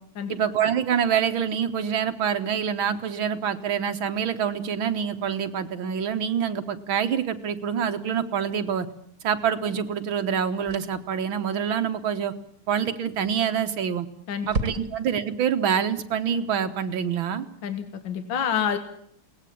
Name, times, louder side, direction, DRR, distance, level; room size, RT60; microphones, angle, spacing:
voice 1, 0.3-8.9 9.2-12.3 12.7-14.1 14.5-17.5, right 8 dB, 80° right, 9 dB, 2.1 m, -26 dB
sound 1, 9.3-9.5 10.7-11.1 13.2-13.7 14.0-14.1 14.5-15.3, right 3 dB, 45° right, 2.0 m, -32 dB
voice 2, 17.6-18.8, left 8 dB, 65° left, 9 dB, 2.2 m, -27 dB
22.0 x 18.5 x 8.7 m, 0.67 s
omnidirectional pair, 2.2 m